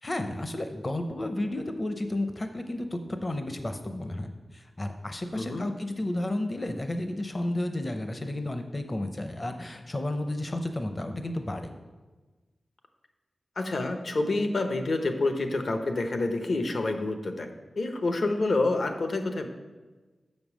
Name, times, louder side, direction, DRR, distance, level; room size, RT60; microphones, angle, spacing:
voice 1, 0.0-11.7, left 1 dB, 30° left, 6 dB, 0.6 m, -32 dB
voice 2, 13.6-17.5 17.8-19.5, left 2 dB, 65° left, 6 dB, 0.8 m, -28 dB
6.9 x 5.3 x 6.2 m, 1.3 s
wide cardioid pair, 95°, 0 cm